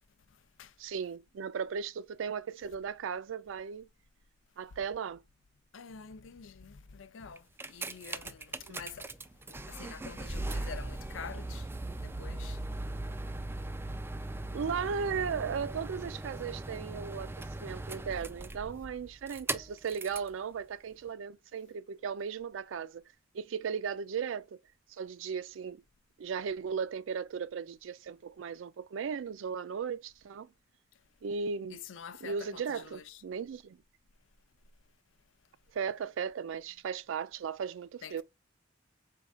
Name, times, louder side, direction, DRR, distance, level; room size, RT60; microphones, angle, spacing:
voice 1, 0.3-0.8 5.7-9.2 9.5-12.6 31.7-33.2 38.0-38.2, left 6 dB, 85° left, 0.5 m, -47 dB
voice 2, 0.8-3.9 4.6-5.2 8.6-8.8 14.5-23.0 23.3-24.6 24.9-25.8 26.2-30.5 31.2-31.8 32.2-33.8 35.7-38.2, right 6 dB, 85° right, 0.4 m, -36 dB
sound 1, 7.4-20.3 21.1-21.2, right 2 dB, 10° right, 0.3 m, -39 dB
4.6 x 3.6 x 2.3 m
head